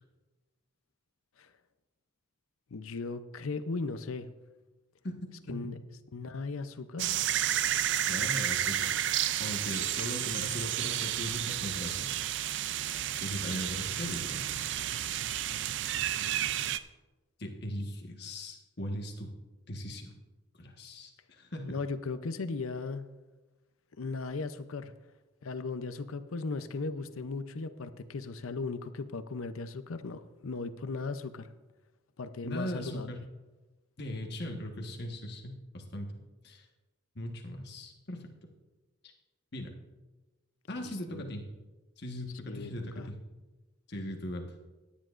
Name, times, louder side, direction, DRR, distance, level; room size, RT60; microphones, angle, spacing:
voice 1, 2.7-4.3 5.5-5.8 6.1-7.1 21.7-23.0 24.0-24.9 25.4-31.5 32.2-33.1 40.8-41.3 42.5-43.1, left 3 dB, 85° left, 11 dB, 0.6 m, -37 dB
sound 1, 7.0-16.8, right 11 dB, 60° right, 0.4 m, -31 dB
voice 2, 8.1-9.0 9.4-12.2 13.2-14.4 17.4-19.3 19.7-20.2 20.6-21.8 32.4-33.2 34.0-36.1 36.4-36.6 37.1-38.2 39.5-39.8 40.7-41.4 42.0-43.2 43.9-44.5, left 1 dB, 50° left, 2 dB, 1.4 m, -39 dB
17.0 x 10.0 x 2.5 m, 1.2 s
head